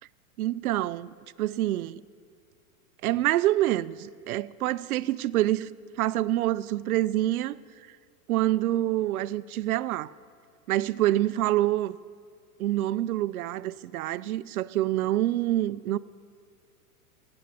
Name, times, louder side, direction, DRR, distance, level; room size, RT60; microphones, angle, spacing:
voice 1, 0.4-2.0 3.0-7.6 8.3-10.1 10.7-12.0 12.6-16.0, right 14 dB, 75° right, 0.6 m, -26 dB
16.5 x 8.9 x 7.4 m
hypercardioid pair, 145°, 44 cm